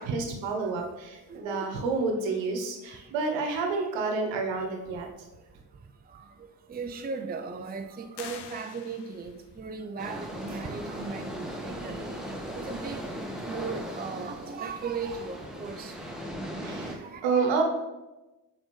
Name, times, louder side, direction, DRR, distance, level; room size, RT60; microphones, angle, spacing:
voice 1, 0.0-5.1 16.6-17.6, right 4 dB, 70° right, 3 dB, 1.2 m, -29 dB
voice 2, 1.3-2.0 5.0-5.1 6.7-12.0 12.7-13.0 13.5-15.9 17.1-17.4, right 4 dB, 20° right, 6 dB, 0.6 m, -37 dB
sound 1, 8.1-9.5, left 8 dB, 60° left, 0.8 m, -45 dB
sound 2, 10.0-16.9, equal, ahead, 1.5 m, -38 dB
7.2 x 5.0 x 3.2 m, 1.1 s
hypercardioid pair, 45°, 47 cm